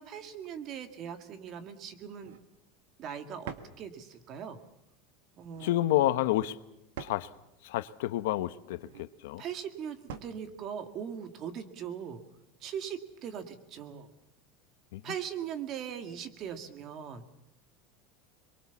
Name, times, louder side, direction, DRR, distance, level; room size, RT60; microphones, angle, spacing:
voice 1, 0.0-2.4 3.0-4.6 5.4-6.0 9.4-12.2 12.6-14.1 15.0-17.3, right 8 dB, 40° right, 2.2 m, -40 dB
sound 1, 2.1-2.5 3.4-3.8 5.3-5.8 7.0-7.3 8.7-9.1 10.1-10.4, right 7 dB, 85° right, 1.9 m, -44 dB
voice 2, 5.6-6.6 7.0-7.3 7.6-9.4 14.9-15.0, left 15 dB, 80° left, 0.9 m, -29 dB
23.5 x 23.0 x 7.1 m
supercardioid pair, 140°, 0 cm